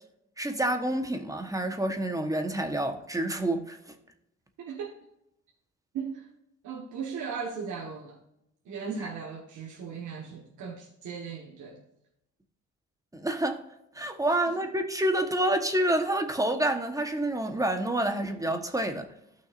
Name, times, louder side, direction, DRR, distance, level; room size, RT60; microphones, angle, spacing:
voice 1, 0.4-3.8 13.1-13.6 14.0-19.1, right 1 dB, 10° right, 6 dB, 1.3 m, -28 dB
voice 2, 4.6-4.9 5.9-6.3 6.6-8.2 8.6-11.8, right 6 dB, 75° right, -1 dB, 1.5 m, -37 dB
13.5 x 6.2 x 2.6 m, 0.81 s
cardioid pair, 90°, 30 cm